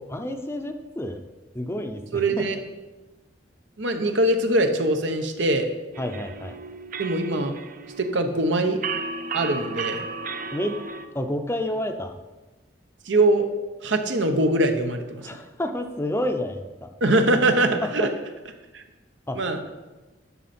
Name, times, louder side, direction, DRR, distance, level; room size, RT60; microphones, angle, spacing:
voice 1, 0.1-1.2 1.5-2.5 6.0-6.6 10.5-10.8 11.1-12.2 15.2-16.9 17.8-18.1 19.3-19.4, left 1 dB, 15° left, 6 dB, 0.6 m, -29 dB
voice 2, 2.1-2.6 3.8-5.7 7.0-7.5 8.0-8.8 9.3-10.0 13.1-13.5 13.8-15.3 17.0-18.1 18.7-18.8 19.4-19.6, right 1 dB, 85° right, 6 dB, 1.0 m, -22 dB
sound 1, 5.9-11.1, right 4 dB, 45° right, 0.5 m, -34 dB
11.0 x 6.4 x 4.3 m, 1.2 s
head